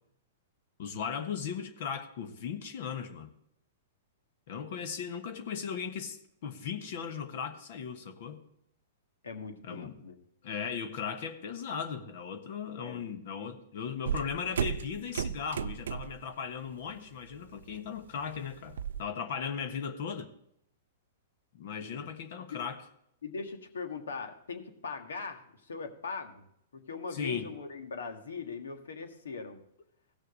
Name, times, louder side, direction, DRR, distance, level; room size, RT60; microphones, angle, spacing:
voice 1, 0.8-3.3 4.5-8.4 9.6-9.9 10.4-20.3 21.5-22.8 27.1-27.5, left 7 dB, 60° left, 8 dB, 1.2 m, -37 dB
voice 2, 9.2-10.2 12.8-13.1 13.4-13.5 21.8-22.1 22.5-22.6 23.2-26.4 26.9-29.6, left 4 dB, 85° left, 6 dB, 1.6 m, -40 dB
sound 1, 14.0-16.3 16.6-17.0 17.3-19.0, right 8 dB, 80° right, 0.4 m, -35 dB
16.5 x 6.5 x 4.0 m, 0.73 s
hypercardioid pair, 125°, 0 cm